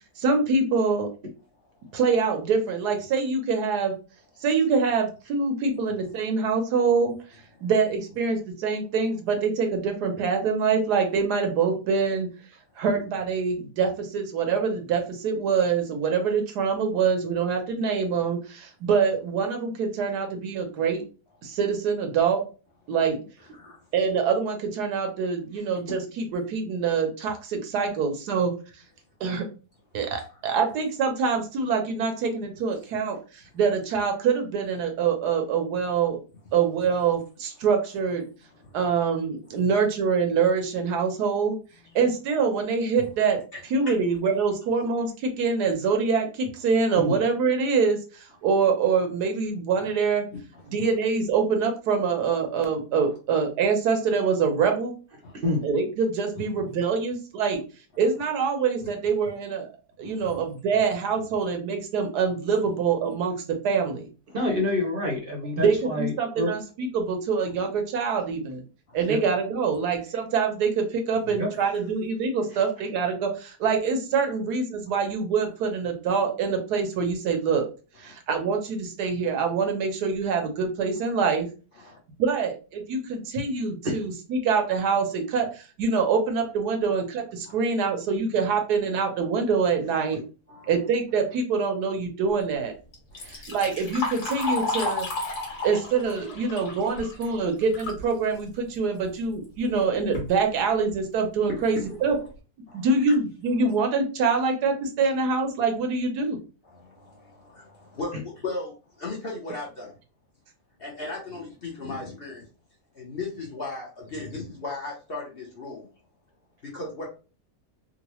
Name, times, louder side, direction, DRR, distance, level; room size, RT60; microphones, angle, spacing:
voice 1, 0.2-1.1 1.9-3.9 4.4-7.1 7.6-12.3 12.8-21.0 21.4-22.4 22.9-23.2 23.9-28.5 29.2-29.5 29.9-36.2 36.5-38.2 38.7-41.6 41.9-43.4 43.7-50.3 50.7-54.9 55.6-57.6 58.0-59.7 60.0-64.1 65.6-68.6 68.9-77.7 78.0-81.5 82.2-90.2 90.7-92.7 93.2-95.1 95.6-102.2 102.7-106.4, right 5 dB, 80° right, 4 dB, 1.3 m, -25 dB
voice 2, 23.5-23.9 30.2-30.3 38.6-38.8 43.0-43.1 43.5-44.0 50.5-50.6 55.2-55.3 56.3-56.4 60.0-60.4 68.9-69.0 71.5-71.6 78.0-78.2 81.8-82.0 87.5-87.6 90.5-90.7 93.1-93.4 95.6-95.7 101.6-101.7 102.7-103.2 106.6-109.9 110.8-112.4 112.9-115.9 116.6-117.1, left 3 dB, 45° left, -3 dB, 0.8 m, -37 dB
voice 3, 64.3-66.5 69.1-69.2 71.3-71.5 83.8-83.9, left 1 dB, 45° right, 1 dB, 0.8 m, -27 dB
Liquid, 92.9-98.0 98.4-98.5 99.4-99.5 99.9-100.3 100.9-101.0 101.5-101.6 102.0-102.3, left 2 dB, 75° left, 1.7 m, -32 dB
3.8 x 2.1 x 3.0 m, 0.35 s
omnidirectional pair, 1.7 m